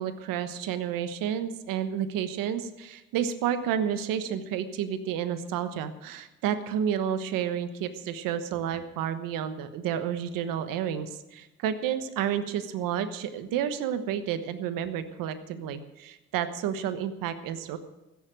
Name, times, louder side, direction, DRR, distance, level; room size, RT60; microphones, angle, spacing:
voice 1, 0.0-17.8, right 9 dB, 80° right, 10 dB, 1.3 m, -30 dB
15.5 x 7.2 x 9.1 m, 1.1 s
supercardioid pair, 70°, 33 cm